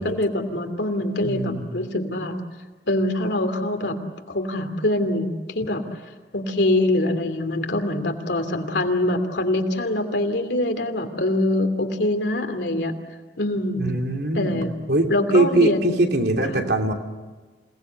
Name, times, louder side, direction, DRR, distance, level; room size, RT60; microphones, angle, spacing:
voice 1, 0.0-2.4 2.9-4.0 4.3-5.8 6.3-12.9 13.4-13.8 14.3-14.7 15.1-16.1, left 1 dB, 75° left, 6 dB, 2.9 m, -24 dB
voice 2, 1.2-1.6 13.7-14.6 14.9-16.9, right 2 dB, 65° right, 3 dB, 3.1 m, -22 dB
28.0 x 19.0 x 8.3 m, 1.3 s
head